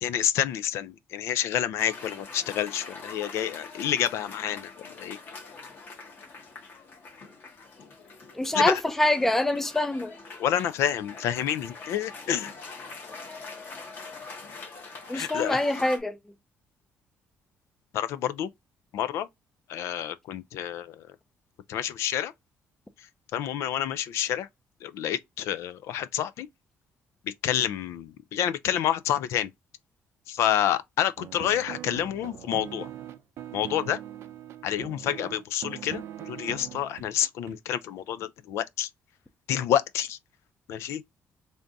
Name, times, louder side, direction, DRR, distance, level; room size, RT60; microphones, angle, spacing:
voice 1, 0.0-4.7 5.0-5.2 8.5-8.8 10.4-12.5 15.1-15.6 17.9-18.5 18.9-19.3 19.7-21.0 21.7-22.3 23.3-24.5 24.8-26.5 27.3-29.5 30.3-32.9 33.5-34.0 34.6-38.9 39.5-40.2 40.7-41.0, left 10 dB, 80° left, 0.3 m, -28 dB
Cheering / Applause, 1.8-16.0, left 3 dB, 45° left, 1.3 m, -44 dB
voice 2, 8.3-10.1 15.1-16.2, left 1 dB, 5° left, 0.4 m, -25 dB
sound 1, 31.2-37.6, right 11 dB, 65° right, 0.5 m, -41 dB
3.4 x 2.5 x 3.8 m
cardioid pair, 155°, 5 cm